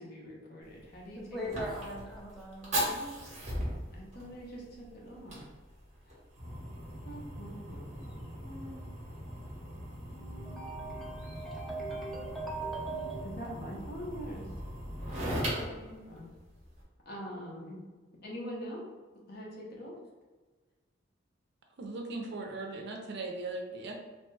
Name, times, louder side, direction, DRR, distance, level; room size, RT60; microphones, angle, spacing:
voice 1, 0.0-1.4 3.9-5.4 7.0-8.1 8.4-8.8 13.2-14.5 15.5-16.3 17.1-17.8 18.2-18.9 19.3-19.9, equal, 50° left, -4 dB, 0.8 m, -44 dB
Fire, 0.6-16.8, equal, 35° right, 0.9 m, -39 dB
voice 2, 1.2-3.1 10.1-13.2, right 2 dB, ahead, -5 dB, 0.6 m, -40 dB
voice 3, 21.8-23.9, right 2 dB, 60° right, 2 dB, 0.5 m, -38 dB
2.9 x 2.1 x 3.2 m, 1.3 s
head